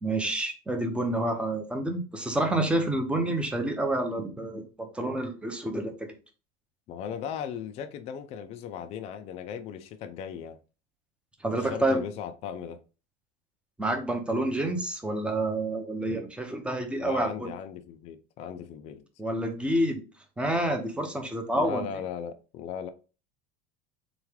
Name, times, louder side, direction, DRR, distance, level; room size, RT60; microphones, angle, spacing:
voice 1, 0.0-5.9 11.4-12.0 13.8-17.5 19.2-20.0 20.4-21.9, right 1 dB, 5° right, 0.6 m, -28 dB
voice 2, 6.9-10.6 11.5-12.8 17.0-19.0 21.6-22.9, left 8 dB, 35° left, 0.4 m, -37 dB
3.7 x 3.1 x 3.5 m
cardioid pair, 155°, 19 cm